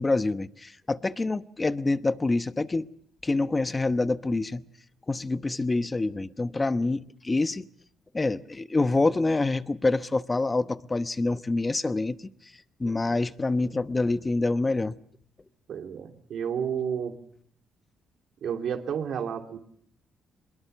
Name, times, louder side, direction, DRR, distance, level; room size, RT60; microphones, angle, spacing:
voice 1, 0.0-2.9 3.2-4.6 5.1-7.7 8.1-12.2 12.8-14.9, left 2 dB, 20° left, 1.0 m, -26 dB
voice 2, 15.7-17.2 18.4-19.6, right 7 dB, 65° right, 2.9 m, -31 dB
23.5 x 21.0 x 6.9 m
cardioid pair, 90°, 0 cm